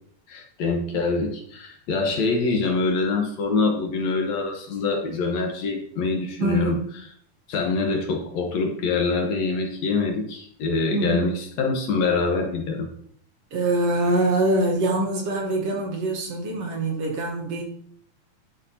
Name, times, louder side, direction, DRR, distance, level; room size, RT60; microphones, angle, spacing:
voice 1, 0.3-6.8 7.5-12.9, left 4 dB, 65° left, 2 dB, 2.1 m, -25 dB
voice 2, 6.4-6.8 10.9-11.3 13.5-17.6, right 2 dB, 60° right, 0 dB, 2.1 m, -24 dB
11.5 x 5.7 x 2.8 m, 0.63 s
omnidirectional pair, 3.6 m